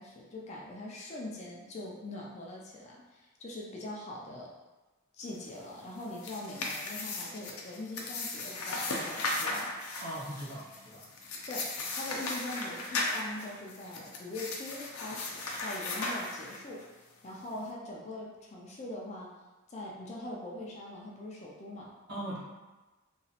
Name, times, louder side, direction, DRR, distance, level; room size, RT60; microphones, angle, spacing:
voice 1, 0.0-4.5 5.1-9.7 11.5-16.8 17.2-19.3 19.7-21.9, left 1 dB, 30° left, -3 dB, 0.3 m, -42 dB
sound 1, 5.9-16.8, left 2 dB, 90° left, 0.5 m, -37 dB
voice 2, 10.0-11.1 22.1-22.4, right 1 dB, 50° right, -7 dB, 0.9 m, -39 dB
2.9 x 2.3 x 2.8 m, 1.2 s
head